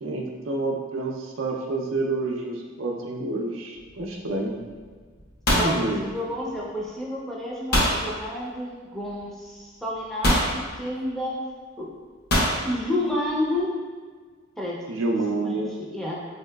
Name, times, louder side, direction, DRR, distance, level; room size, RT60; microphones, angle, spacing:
voice 1, 0.0-4.5 5.5-6.0 14.9-15.7, right 2 dB, 90° right, 1 dB, 0.5 m, -28 dB
sound 1, 3.8-4.2 4.4-4.8 5.1-6.7 7.7-8.0 9.2-9.3 10.2-10.6 12.3-12.6, equal, 55° left, 0.7 m, -22 dB
voice 2, 6.0-10.4 10.7-11.3 11.8-11.9 12.6-13.7 14.6-14.8 15.4-15.5 15.9-16.2, left 1 dB, ahead, -5 dB, 0.4 m, -30 dB
3.8 x 2.7 x 2.2 m, 1.5 s
head